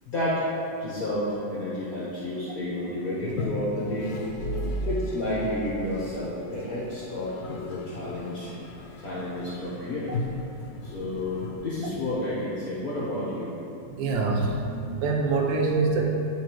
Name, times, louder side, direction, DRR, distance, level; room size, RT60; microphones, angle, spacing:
voice 1, 0.1-0.5 0.8-4.2 4.8-8.5 9.0-10.2 10.8-13.5, left 1 dB, 55° left, -8 dB, 1.4 m, -31 dB
Toilet flush, 3.2-12.3, left 3 dB, 90° left, 0.7 m, -38 dB
voice 2, 14.0-16.2, right 3 dB, 90° right, 0 dB, 1.4 m, -25 dB
10.0 x 4.2 x 3.0 m, 2.7 s
omnidirectional pair, 2.0 m